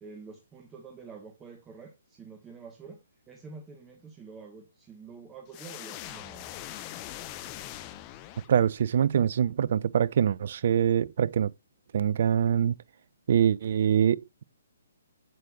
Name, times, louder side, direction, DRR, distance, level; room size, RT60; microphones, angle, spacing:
voice 1, 0.0-3.0 3.3-6.5, right 5 dB, 15° right, 1.2 m, -47 dB
sound 1, 5.5-8.9, left 13 dB, 30° left, 0.9 m, -42 dB
voice 2, 8.5-11.5 11.9-12.8 13.3-14.4, right 9 dB, 55° right, 0.4 m, -24 dB
8.1 x 7.6 x 2.5 m
figure-of-eight pair, 130°, 0 cm